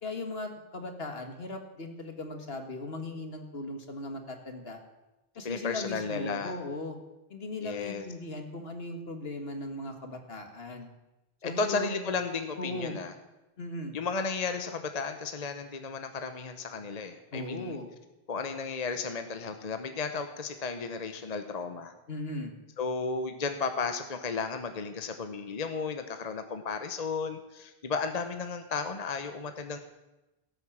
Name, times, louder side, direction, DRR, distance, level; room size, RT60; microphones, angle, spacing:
voice 1, 0.0-4.8 5.4-7.0 7.3-10.9 11.4-12.0 12.6-13.0 13.6-13.9 17.3-17.9 22.1-22.5, left 2 dB, 70° left, 5 dB, 2.0 m, -38 dB
voice 2, 5.4-6.6 7.6-8.0 11.4-13.1 13.9-17.8 18.3-21.9 22.8-29.8, left 4 dB, 40° left, 7 dB, 1.0 m, -34 dB
17.5 x 8.2 x 7.3 m, 1.0 s
omnidirectional pair, 1.1 m